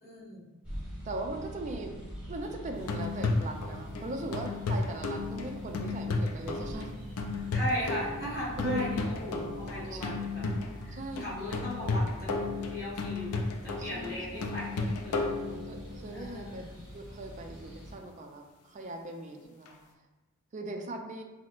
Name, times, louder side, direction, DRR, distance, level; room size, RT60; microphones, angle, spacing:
voice 1, 0.0-0.5 7.5-10.5 10.8-12.3 12.6-13.3 13.6-15.2 16.1-16.7, equal, 45° left, -8 dB, 1.5 m, -38 dB
sound 1, 0.6-18.0, equal, 5° right, 0.9 m, -44 dB
voice 2, 1.0-1.9 2.3-6.9 8.6-9.0 9.9-10.2 10.9-11.4 13.8-14.5 15.6-16.6 16.9-19.8 20.5-21.2, right 1 dB, 35° right, 3 dB, 0.4 m, -39 dB
sound 2, 2.7-16.1 19.7-19.8, left 3 dB, 85° left, 0.4 m, -34 dB
5.9 x 2.1 x 2.4 m, 1.1 s
head